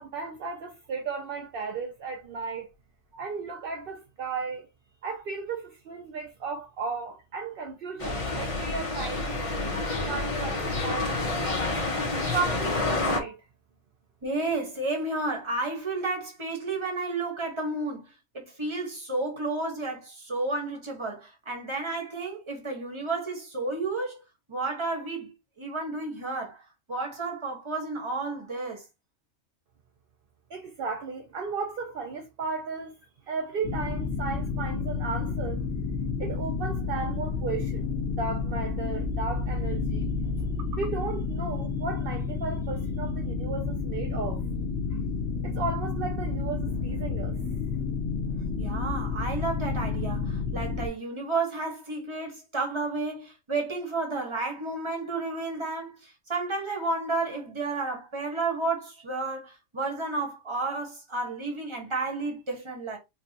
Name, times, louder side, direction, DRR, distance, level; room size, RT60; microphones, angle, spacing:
voice 1, 0.0-2.7 3.2-4.7 5.0-9.8 10.0-11.1 12.3-13.4 30.5-33.0 33.3-35.6 36.2-40.1 40.7-44.4 45.4-47.4, right 4 dB, 55° right, 0.8 m, -35 dB
sound 1, 8.0-13.2, left 2 dB, 30° left, 0.9 m, -29 dB
voice 2, 14.2-18.1 18.3-24.2 24.5-26.6 26.9-28.8 38.8-39.0 48.5-63.0, right 3 dB, 25° right, 1.2 m, -32 dB
sound 2, 33.6-50.9, left 4 dB, 10° left, 1.2 m, -30 dB
4.6 x 2.4 x 2.8 m
omnidirectional pair, 1.3 m